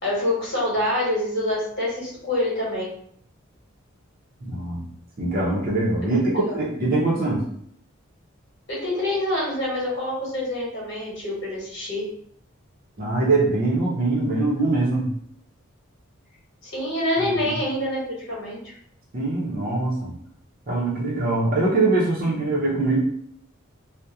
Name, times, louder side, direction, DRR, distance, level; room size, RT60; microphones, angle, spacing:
voice 1, 0.0-2.9 6.0-6.5 8.7-12.1 16.6-18.7, left 1 dB, 55° left, -5 dB, 1.1 m, -26 dB
voice 2, 4.4-4.8 5.2-7.4 13.0-15.1 17.2-17.6 19.1-20.1 20.7-23.0, right 2 dB, 40° right, -5 dB, 0.6 m, -23 dB
2.7 x 2.1 x 2.3 m, 0.65 s
head